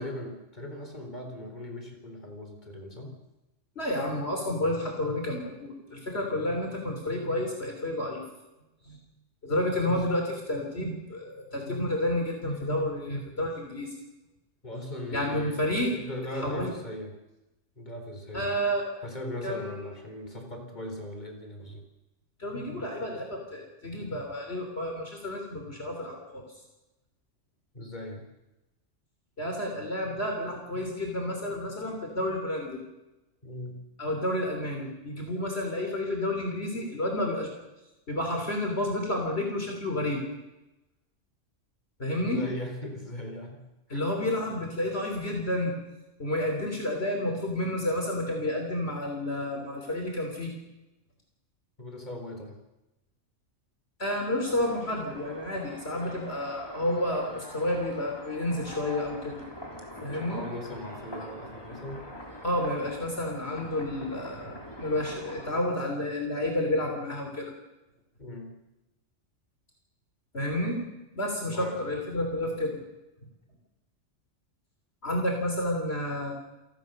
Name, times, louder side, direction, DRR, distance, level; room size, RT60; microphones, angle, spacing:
voice 1, 0.0-3.2 6.5-6.6 9.8-10.0 14.6-17.2 17.8-18.5 19.0-21.8 27.7-28.3 33.4-33.8 42.2-44.0 51.8-52.6 60.2-62.0 68.2-68.5 71.5-72.0, left 1 dB, 35° left, 4 dB, 4.3 m, -39 dB
voice 2, 3.8-8.2 8.9-9.0 9.4-13.9 15.1-15.9 16.4-16.7 18.3-18.9 19.4-19.8 22.4-26.5 29.4-32.8 34.0-37.5 38.1-40.2 42.0-42.4 43.9-45.7 46.2-50.5 54.0-59.4 60.0-60.4 62.4-67.5 70.3-70.8 71.2-72.8 75.0-76.3, left 1 dB, 55° left, 1 dB, 3.7 m, -30 dB
sound 1, 54.5-65.5, equal, 20° left, 3.6 m, -44 dB
28.5 x 18.0 x 6.6 m, 1.0 s
omnidirectional pair, 1.3 m